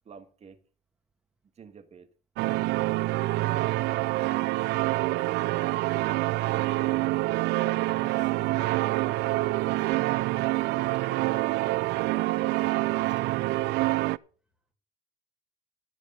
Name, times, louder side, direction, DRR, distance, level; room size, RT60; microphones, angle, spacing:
voice 1, 0.1-0.6 1.6-2.1 3.3-3.9 4.1-4.8, right 6 dB, 40° right, 1.7 m, -48 dB
sound 1, 2.4-14.2, right 19 dB, 85° right, 0.4 m, -26 dB
Human voice, 7.0-11.1 11.5-11.6 12.1-12.2, left 5 dB, 50° left, 1.9 m, -52 dB
voice 2, 8.7-11.6 12.1-13.7, right 2 dB, 5° right, 2.6 m, -53 dB
14.0 x 5.1 x 6.8 m
cardioid pair, 110°, 17 cm